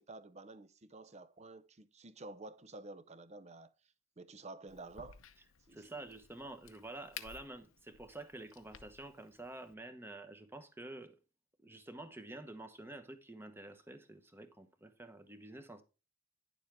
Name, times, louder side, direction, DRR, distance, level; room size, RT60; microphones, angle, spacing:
voice 1, 0.0-3.7 4.2-5.2 5.7-5.8, right 2 dB, 35° right, 0.7 m, -51 dB
Crack, 4.7-9.7, left 8 dB, 90° left, 0.8 m, -55 dB
voice 2, 5.7-11.2 11.6-15.8, right 2 dB, 10° right, 1.0 m, -49 dB
10.5 x 7.1 x 3.5 m
head